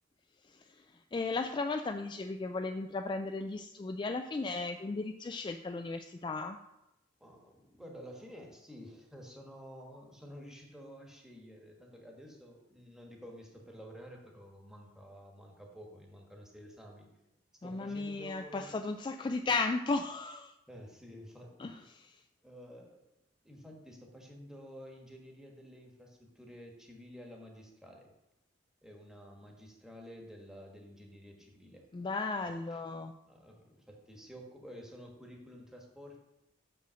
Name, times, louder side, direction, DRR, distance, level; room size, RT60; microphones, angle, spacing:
voice 1, 0.4-6.6 17.6-20.5 21.6-21.8 31.9-33.1, left 3 dB, 25° left, 7 dB, 0.3 m, -35 dB
voice 2, 7.2-17.1 17.6-18.7 20.7-21.7 22.4-23.0 23.4-28.1 28.8-31.8 32.4-32.8 33.2-36.3, equal, 5° right, 0 dB, 1.4 m, -51 dB
6.5 x 5.5 x 6.2 m, 0.90 s
head